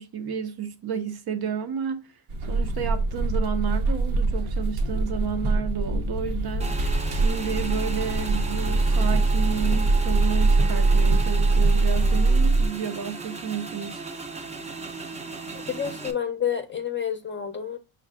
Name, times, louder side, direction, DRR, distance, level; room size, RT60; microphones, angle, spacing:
voice 1, 0.0-2.1 2.5-14.0, right 7 dB, 50° right, 0.8 m, -32 dB
sound 1, 2.3-12.7, right 3 dB, 90° right, 0.9 m, -23 dB
Motorcycle / Engine, 6.6-16.1, right 4 dB, 15° right, 0.6 m, -36 dB
voice 2, 15.7-17.8, left 8 dB, 25° left, 0.7 m, -29 dB
5.4 x 2.3 x 3.6 m
cardioid pair, 110°, 48 cm